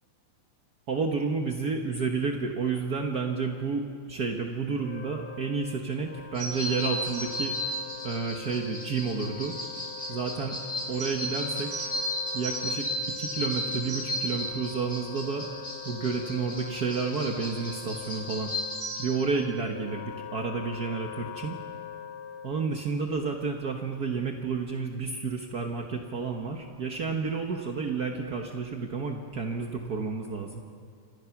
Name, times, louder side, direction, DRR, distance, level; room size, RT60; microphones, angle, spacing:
voice 1, 0.9-7.5 8.0-9.6 10.1-10.6 10.9-11.9 12.3-12.9 13.2-15.5 15.8-18.5 19.0-21.6 22.4-30.6, right 4 dB, 60° right, 2 dB, 1.0 m, -30 dB
Wind instrument woodwind instrument, 4.8-22.9, left 8 dB, 55° left, 1.5 m, -43 dB
sound 1, 6.3-19.0, left 1 dB, 10° left, 7.4 m, -34 dB
28.5 x 27.0 x 6.0 m, 2.2 s
omnidirectional pair, 3.7 m